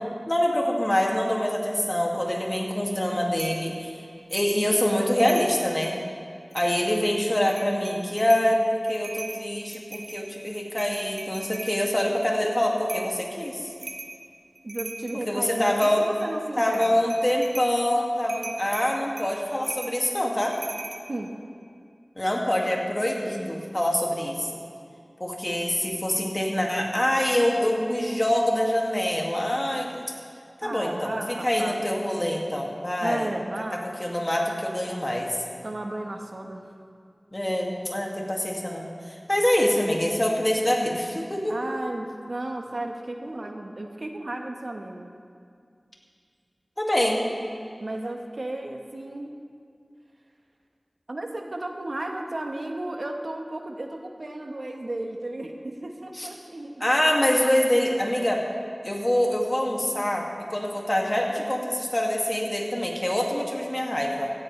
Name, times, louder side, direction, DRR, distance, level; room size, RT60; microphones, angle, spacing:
voice 1, 0.3-3.9 4.3-6.0 6.5-13.6 15.3-16.0 16.6-20.6 22.2-24.5 25.2-30.0 30.6-33.3 34.0-35.3 37.3-38.9 39.3-41.6 46.8-47.3 56.2-56.3 56.8-58.4 58.8-64.3, left 1 dB, 30° left, -1 dB, 2.2 m, -25 dB
sound 1, 3.4-3.7 4.3-4.7 5.0-6.0 6.5-7.0 7.4-8.5 8.9-11.8 12.9-13.2 13.8-14.2 14.5-15.3 15.8-16.3 16.7-17.7 18.3-21.0, right 2 dB, 85° right, 1.1 m, -39 dB
voice 2, 14.6-17.1 21.1-21.3 30.6-31.9 33.0-33.8 35.6-36.7 41.5-45.1 47.8-49.3 51.1-56.8, right 1 dB, 65° right, 3 dB, 1.2 m, -34 dB
16.5 x 16.5 x 3.3 m, 2.3 s
wide cardioid pair, 55°, 0 cm